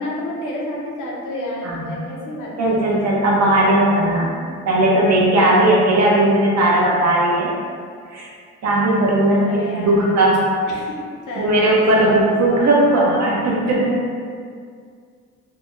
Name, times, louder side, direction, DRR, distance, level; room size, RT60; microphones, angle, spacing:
voice 1, 0.0-3.2 6.0-6.5 9.4-10.2 10.7-13.2, left 1 dB, 80° left, -4 dB, 0.8 m, -30 dB
voice 2, 1.6-2.0 2.6-4.3 4.7-7.5 8.1-8.3 8.6-10.5 11.4-14.0, right 1 dB, 60° right, -4 dB, 0.9 m, -17 dB
3.4 x 2.2 x 3.1 m, 2.1 s
cardioid pair, 90°, 30 cm